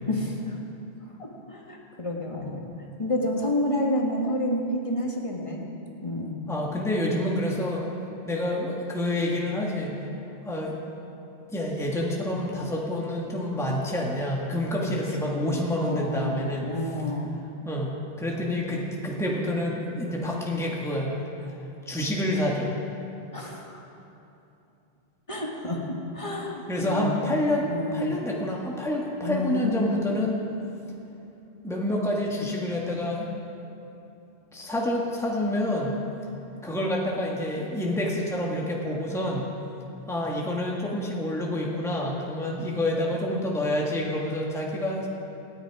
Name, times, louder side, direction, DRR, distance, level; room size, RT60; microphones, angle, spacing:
voice 1, 0.1-0.6 1.2-2.7 3.0-5.6 6.0-6.4 15.2-17.4 23.3-23.9 25.3-27.3 27.7-28.1 29.2-30.0, left 1 dB, 30° left, -1 dB, 1.9 m, -30 dB
voice 2, 6.5-7.8 8.2-10.0 10.4-10.8 11.5-16.7 17.6-17.9 18.2-21.1 21.4-21.5 21.8-22.7 26.7-30.4 31.6-33.3 34.5-35.9 36.6-39.5 40.1-45.1, left 1 dB, 5° left, -3 dB, 1.7 m, -28 dB
27.0 x 9.8 x 4.9 m, 2.8 s
omnidirectional pair, 1.1 m